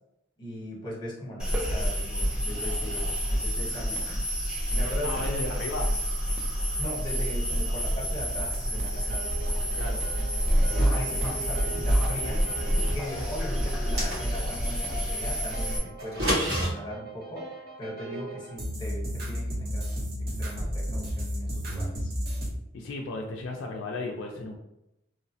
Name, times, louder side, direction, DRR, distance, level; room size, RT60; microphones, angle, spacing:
voice 1, 0.4-4.3 4.7-5.1 6.8-9.3 10.8-12.4 12.9-17.5 17.8-22.1, equal, 25° left, -4 dB, 0.9 m, -39 dB
sound 1, 1.4-15.8, equal, 5° right, 0.5 m, -28 dB
voice 2, 5.0-5.9 7.7-7.8 9.7-10.1 22.7-24.6, left 2 dB, 65° left, 1 dB, 0.3 m, -34 dB
sound 2, 8.8-22.5, equal, 50° right, 0.6 m, -36 dB
sound 3, 13.7-14.6 16.0-16.7, equal, 85° right, 1.5 m, -28 dB
2.9 x 2.0 x 2.6 m, 0.86 s
head